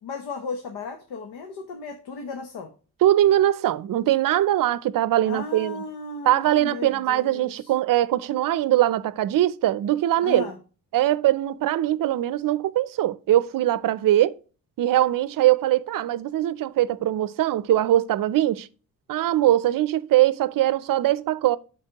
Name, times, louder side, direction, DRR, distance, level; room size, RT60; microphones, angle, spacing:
voice 1, 0.0-2.7 5.2-7.7 10.2-10.6, left 4 dB, 85° left, 1.1 m, -35 dB
voice 2, 3.0-5.8 6.2-10.5 10.9-14.3 14.8-18.7 19.1-21.6, right 13 dB, 60° right, 0.5 m, -21 dB
12.0 x 4.1 x 2.9 m
cardioid pair, 125°, 38 cm